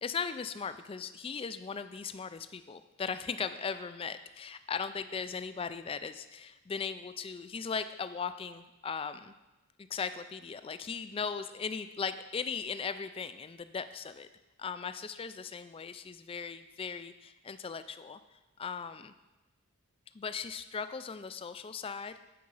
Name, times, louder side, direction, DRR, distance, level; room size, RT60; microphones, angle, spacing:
voice 1, 0.0-9.3 9.8-14.3 14.6-18.2 18.6-19.1 20.1-22.1, left 5 dB, 25° left, 11 dB, 0.3 m, -38 dB
9.4 x 4.9 x 5.5 m, 1.0 s
head